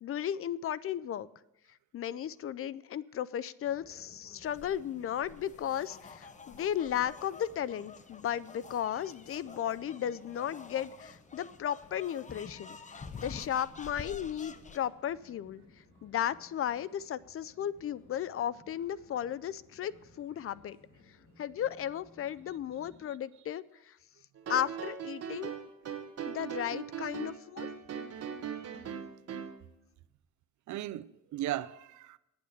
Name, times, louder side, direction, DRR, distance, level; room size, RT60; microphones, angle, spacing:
voice 1, 0.0-1.3 1.9-15.6 16.0-19.9 20.2-20.8 21.4-23.9 24.5-25.5 26.3-27.7, left 10 dB, 50° left, 0.4 m, -35 dB
sound 1, 3.6-23.0, left 2 dB, 75° left, 3.2 m, -60 dB
sound 2, 4.4-14.8, left 4 dB, 25° left, 0.8 m, -49 dB
sound 3, 24.4-29.6, right 7 dB, 55° right, 1.3 m, -39 dB
voice 2, 28.2-28.7 30.7-32.2, right 13 dB, 70° right, 0.6 m, -38 dB
9.6 x 8.7 x 7.2 m
cardioid pair, 90°, 30 cm